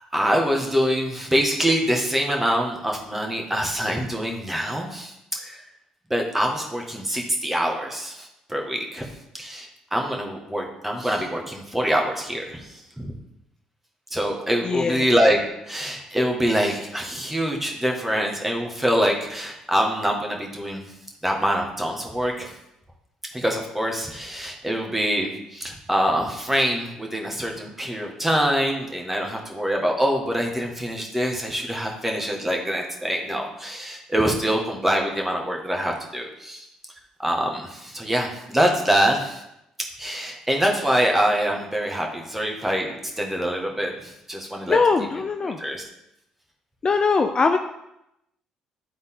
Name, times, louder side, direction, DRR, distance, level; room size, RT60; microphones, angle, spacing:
voice 1, 0.1-5.6 6.1-9.0 9.3-13.1 14.1-15.4 15.7-20.8 21.2-22.5 23.3-36.6 37.2-39.4 40.0-45.8, equal, 10° right, 1 dB, 1.7 m, -25 dB
voice 2, 14.6-15.0 44.7-45.6 46.8-47.6, left 4 dB, 35° left, 6 dB, 0.5 m, -21 dB
10.0 x 3.9 x 3.8 m, 0.84 s
hypercardioid pair, 60°, 2 cm